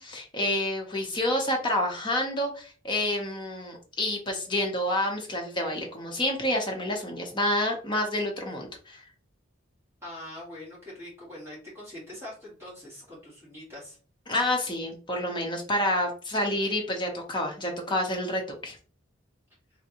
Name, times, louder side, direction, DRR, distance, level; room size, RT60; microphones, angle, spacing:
voice 1, 0.0-9.0 14.3-18.8, left 1 dB, 20° left, 1 dB, 0.8 m, -28 dB
voice 2, 10.0-14.0, left 1 dB, 10° right, -8 dB, 2.0 m, -43 dB
3.7 x 3.4 x 2.9 m, 0.39 s
head